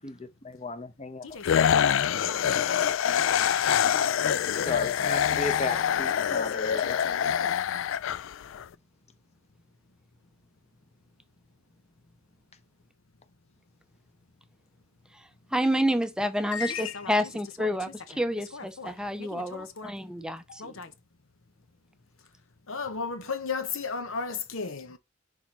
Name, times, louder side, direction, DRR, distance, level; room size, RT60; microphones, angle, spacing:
voice 1, 0.0-1.3 4.6-7.0, left 3 dB, 35° left, 0.9 m, -35 dB
voice 2, 1.2-1.9 2.3-6.4 6.8-7.5 16.5-17.1 17.6-17.8 18.5-18.9 19.2-19.9 20.5-20.9 22.7-25.0, left 5 dB, 90° left, 1.0 m, -37 dB
sound 1, 1.4-8.6, left 9 dB, 70° left, 0.3 m, -25 dB
voice 3, 15.5-20.7, equal, 5° right, 0.5 m, -29 dB
10.5 x 3.8 x 3.0 m
head